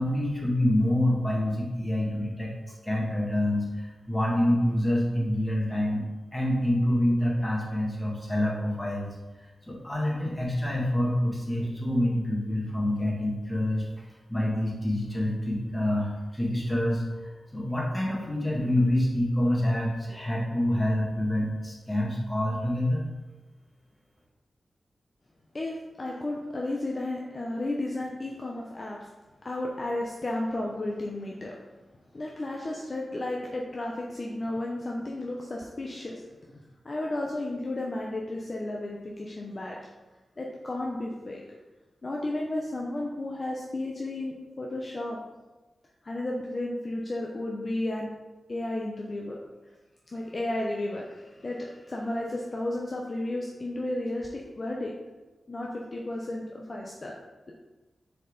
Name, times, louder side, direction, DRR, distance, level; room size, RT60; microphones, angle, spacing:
voice 1, 0.0-2.5 2.8-6.0 6.3-9.1 9.7-13.9 14.3-23.0, left 1 dB, 15° left, -3 dB, 2.0 m, -27 dB
voice 2, 25.5-29.1 29.4-31.6 32.1-36.2 36.5-39.8 40.4-41.4 42.0-45.2 46.0-48.1 48.5-49.4 50.1-54.9 55.5-57.2, left 1 dB, 40° left, -2 dB, 0.8 m, -33 dB
6.5 x 4.5 x 4.0 m, 1.2 s
cardioid pair, 70°, 0 cm